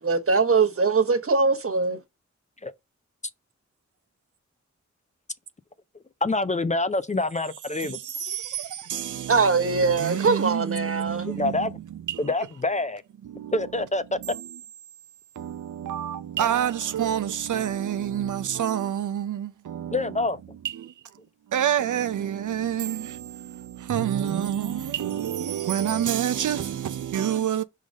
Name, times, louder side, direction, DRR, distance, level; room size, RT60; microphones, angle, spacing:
voice 1, 0.0-2.0 9.3-11.3, right 4 dB, 50° right, 1.1 m, -22 dB
voice 2, 6.2-8.0 11.2-11.8 12.2-13.0 13.5-14.2 19.9-20.4, left 2 dB, 25° left, 0.5 m, -26 dB
voice 3, 7.8-11.7 12.1-12.2 13.3-13.5 15.4-19.8 20.7-20.9 21.5-27.6, right 9 dB, 90° right, 0.5 m, -28 dB
4.9 x 3.8 x 5.2 m
wide cardioid pair, 70°, 30 cm